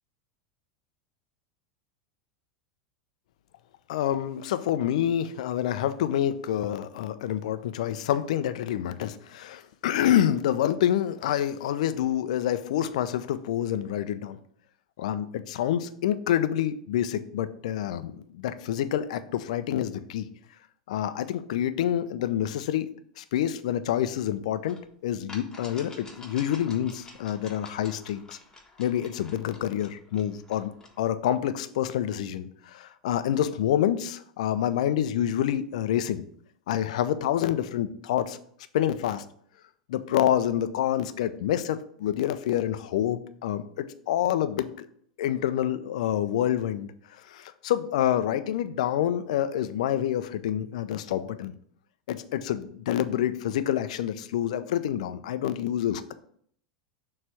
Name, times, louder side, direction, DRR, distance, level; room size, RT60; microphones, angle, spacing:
voice 1, 3.9-14.4 15.0-20.3 20.9-22.9 23.2-24.8 25.0-28.4 28.8-30.7 31.0-36.2 36.7-38.4 38.7-39.2 39.9-44.9 45.2-46.9 47.3-51.5 52.1-56.1, left 11 dB, 65° left, 12 dB, 0.5 m, -27 dB
sound 1, 24.7-24.8 25.3-31.0, left 2 dB, 15° left, 1.4 m, -49 dB
6.8 x 3.2 x 6.0 m, 0.63 s
hypercardioid pair, 90°, 4 cm